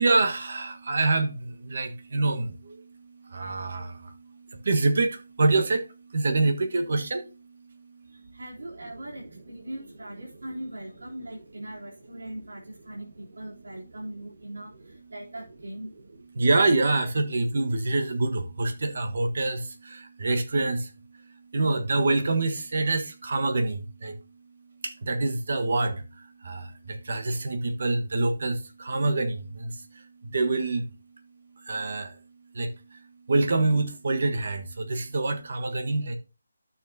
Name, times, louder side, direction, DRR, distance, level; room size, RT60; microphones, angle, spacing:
voice 1, 0.0-7.5 16.3-20.9 21.5-24.2 24.8-30.9 31.6-32.2 32.5-33.0 33.3-36.2, right 2 dB, 50° right, 1.3 m, -26 dB
voice 2, 8.0-15.9, right 1 dB, 80° right, 3.3 m, -40 dB
12.0 x 7.1 x 2.8 m
hypercardioid pair, 175°, 0 cm